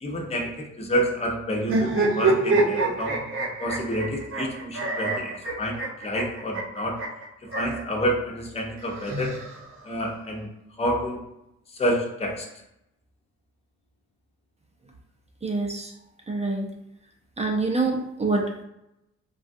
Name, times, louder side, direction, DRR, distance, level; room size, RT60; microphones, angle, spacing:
voice 1, 0.0-3.2 3.6-7.0 7.5-9.3 9.8-10.5 10.8-11.2 11.8-12.5, equal, 20° left, -1 dB, 0.7 m, -28 dB
sound 1, 1.6-7.8 8.8-9.9, right 3 dB, 45° right, 1.0 m, -26 dB
voice 2, 15.4-15.9 16.3-16.7 17.4-18.6, right 3 dB, 20° right, 1 dB, 0.6 m, -26 dB
3.6 x 2.3 x 2.6 m, 0.84 s
cardioid pair, 90°, 30 cm